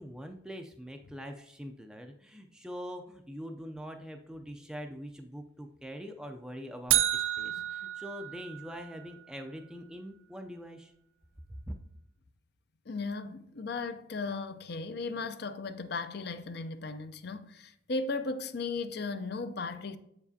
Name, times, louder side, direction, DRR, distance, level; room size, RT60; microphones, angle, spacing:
voice 1, 0.0-10.9 11.5-11.7, equal, 5° right, 0.4 m, -43 dB
sound 1, 6.9-9.0, right 13 dB, 80° right, 0.6 m, -30 dB
voice 2, 12.9-20.0, left 3 dB, 50° left, 0.5 m, -36 dB
7.7 x 7.1 x 2.7 m
head